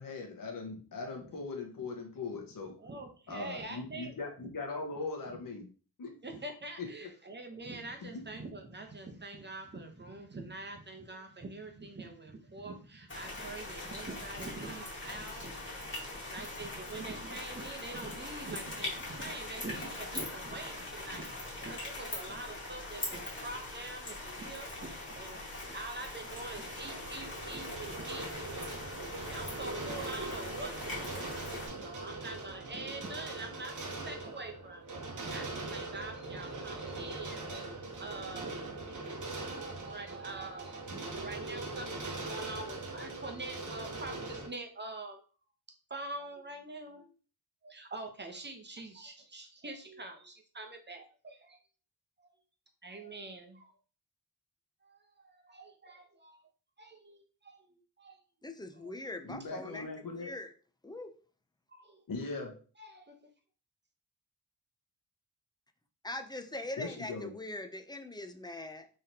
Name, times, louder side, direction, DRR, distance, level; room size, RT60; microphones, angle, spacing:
voice 1, 0.0-2.7 3.3-5.7 6.0-6.1 6.8-7.1 8.0-8.2 59.2-60.3 62.1-62.5 66.8-67.3, left 3 dB, 55° left, 2 dB, 1.1 m, -40 dB
voice 2, 2.8-4.1 6.2-25.4 25.7-28.5 29.0-31.1 31.8-34.9 35.3-37.7 38.0-38.6 39.3-45.2 45.9-47.1 47.6-51.6 52.2-52.3 52.8-53.7 54.8-56.4 56.8-58.2 58.7-59.0 61.7-62.0 62.8-63.2, right 2 dB, 25° right, 4 dB, 0.8 m, -45 dB
sound 1, 13.1-31.7, left 2 dB, 30° left, 1.5 m, -42 dB
sound 2, 26.1-44.5, right 2 dB, 50° right, 1.0 m, -41 dB
voice 3, 58.4-59.9 60.1-60.5 60.8-61.1 66.0-68.9, left 2 dB, 10° left, 7 dB, 0.4 m, -42 dB
3.9 x 3.2 x 2.8 m, 0.39 s
wide cardioid pair, 90°, 39 cm